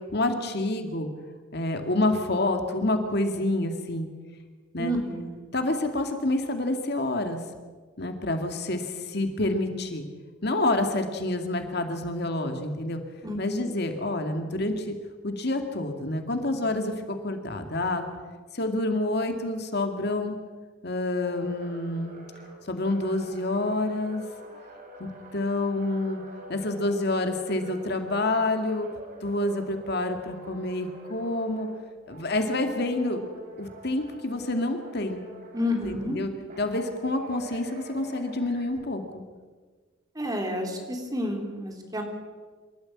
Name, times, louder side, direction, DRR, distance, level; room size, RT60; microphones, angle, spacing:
voice 1, 0.1-1.1 1.5-4.1 4.7-4.9 5.5-7.4 8.0-10.1 10.4-13.0 13.4-15.0 15.2-16.9 17.2-18.1 18.5-20.4 20.8-22.2 22.6-24.2 25.0-26.2 26.5-28.9 29.2-31.7 32.1-33.2 33.6-35.2 35.8-36.3 36.6-39.2, left 2 dB, 55° left, 6 dB, 2.2 m, -28 dB
voice 2, 4.8-5.4 13.2-13.4 13.6-13.7 35.5-36.2 40.1-42.0, left 1 dB, 20° right, 2 dB, 3.5 m, -30 dB
sound 1, 21.2-31.8 32.1-36.1 36.5-38.7, right 2 dB, 45° right, 4.7 m, -47 dB
26.5 x 13.5 x 8.8 m, 1.5 s
head